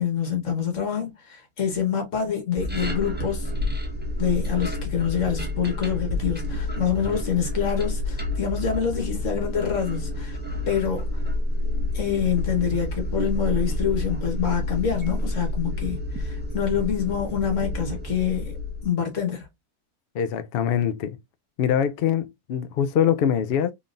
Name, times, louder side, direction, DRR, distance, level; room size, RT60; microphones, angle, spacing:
voice 1, 0.0-3.5 4.2-10.4 10.7-11.1 11.9-18.5 18.8-19.5, left 8 dB, 55° left, 1.6 m, -26 dB
sound 1, 2.6-18.9, left 1 dB, 10° right, 0.7 m, -29 dB
voice 2, 20.1-21.2 21.6-23.7, left 9 dB, 80° left, 0.5 m, -23 dB
3.8 x 3.5 x 2.5 m
omnidirectional pair, 1.6 m